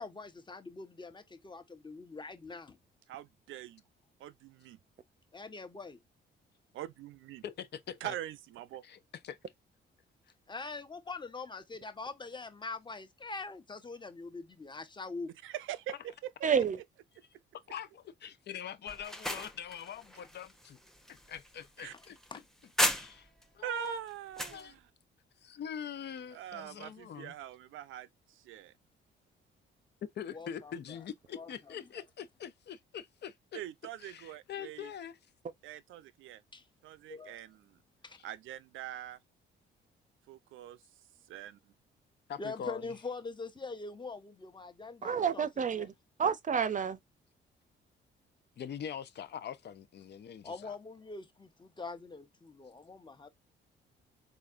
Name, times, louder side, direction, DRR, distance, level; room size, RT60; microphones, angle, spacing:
voice 1, 0.0-2.8 5.3-6.0 10.5-15.3 21.9-22.0 22.3-22.4 30.3-31.0 31.3-31.7 36.5-36.7 37.1-37.5 38.0-38.2 42.4-45.9 50.4-53.3, left 3 dB, 25° left, 1.1 m, -43 dB
voice 2, 3.1-3.8 4.2-4.8 6.7-7.4 8.0-8.8 15.4-16.5 21.8-21.9 23.6-24.8 26.3-28.1 28.4-28.7 33.5-34.9 35.6-36.4 36.8-37.8 38.2-39.2 40.3-40.8 41.3-41.6, right 12 dB, 80° right, 0.6 m, -43 dB
voice 3, 7.4-8.2 8.8-9.4 17.7-20.8 21.1-22.2 22.8-23.3 23.5-24.0 24.5-24.8 25.4-27.3 30.2-33.6 34.0-35.2 38.1-38.2 42.3-42.9 48.6-50.8, left 8 dB, 60° left, 0.8 m, -43 dB
voice 4, 16.4-16.8 45.0-45.9 46.2-47.0, right 7 dB, 40° right, 0.7 m, -29 dB
sound 1, 18.9-23.4 23.8-24.6, equal, ahead, 0.9 m, -36 dB
4.0 x 3.7 x 2.5 m
cardioid pair, 90°, 20 cm